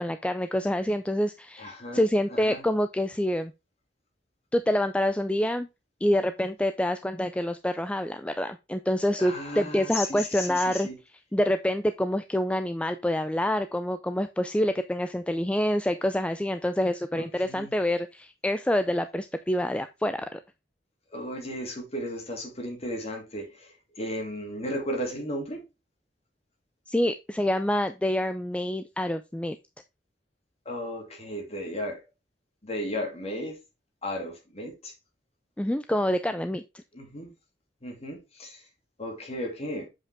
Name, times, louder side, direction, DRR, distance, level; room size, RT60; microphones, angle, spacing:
voice 1, 0.0-3.5 4.5-5.7 6.0-10.9 11.3-20.4 26.9-29.6 35.6-36.8, left 1 dB, 5° left, 0.4 m, -27 dB
voice 2, 1.6-2.0 2.3-2.6 9.2-11.0 17.1-17.7 21.1-25.7 30.7-32.0 32.6-33.6 34.0-34.9 36.9-37.3 37.8-38.6 39.0-39.9, equal, 35° left, 2.5 m, -35 dB
7.4 x 5.3 x 3.4 m
head